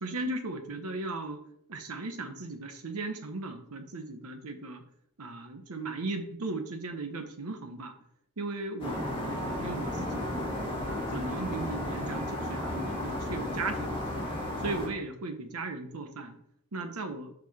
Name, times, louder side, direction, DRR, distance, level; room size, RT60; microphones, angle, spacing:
voice 1, 0.0-1.4 1.7-4.8 5.2-7.9 8.4-10.4 10.9-14.0 14.6-16.4 16.7-17.3, right 3 dB, 85° right, 7 dB, 0.9 m, -37 dB
sound 1, 8.8-14.9, left 1 dB, 25° left, 1.6 m, -33 dB
6.5 x 4.3 x 4.2 m, 0.70 s
head